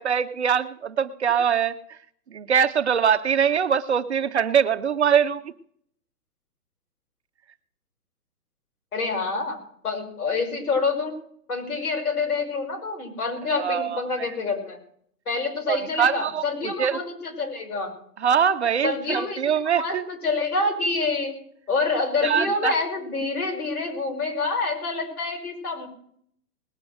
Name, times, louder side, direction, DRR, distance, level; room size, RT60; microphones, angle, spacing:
voice 1, 0.0-2.0 2.3-5.5 13.6-14.3 15.7-17.0 18.2-20.0 22.2-22.7, right 7 dB, 45° right, 10 dB, 0.6 m, -23 dB
voice 2, 8.9-9.6 9.8-11.2 11.5-14.8 15.3-17.9 18.8-19.4 19.8-21.3 21.7-25.9, left 3 dB, 65° left, 3 dB, 5.5 m, -27 dB
19.5 x 6.7 x 7.8 m, 0.65 s
hypercardioid pair, 170°, 47 cm